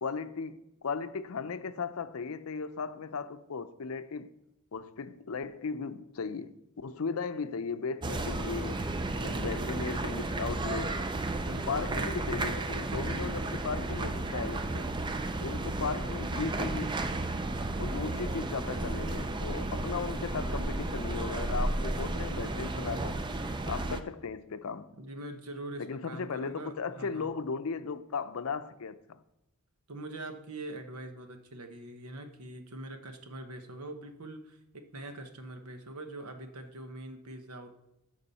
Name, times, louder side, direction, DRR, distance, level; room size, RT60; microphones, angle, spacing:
voice 1, 0.0-4.3 4.7-8.9 9.2-11.0 11.7-14.9 15.4-17.0 17.8-23.3 23.7-25.0 25.8-29.2, left 5 dB, 70° left, 0.5 m, -36 dB
sound 1, 8.0-24.0, right 2 dB, 20° right, 0.4 m, -33 dB
voice 2, 9.2-9.8 11.4-12.0 25.0-27.3 29.9-37.7, right 1 dB, 90° right, 1.1 m, -43 dB
13.0 x 5.2 x 4.1 m
head